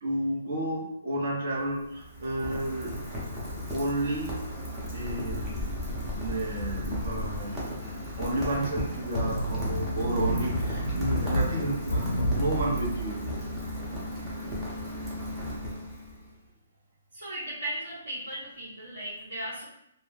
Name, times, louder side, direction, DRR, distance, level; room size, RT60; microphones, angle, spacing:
voice 1, 0.0-3.0 3.7-4.4 4.9-5.7 6.1-13.7 14.0-14.2, right 1 dB, 55° right, -3 dB, 0.8 m, -32 dB
Rain, 1.5-16.3, equal, 10° right, 0.7 m, -35 dB
sound 1, 9.1-14.1 14.5-14.7, equal, 60° left, 0.4 m, -31 dB
voice 2, 17.1-19.7, right 1 dB, 75° right, -11 dB, 1.1 m, -36 dB
2.2 x 2.1 x 3.2 m, 0.77 s
hypercardioid pair, 160°, 0 cm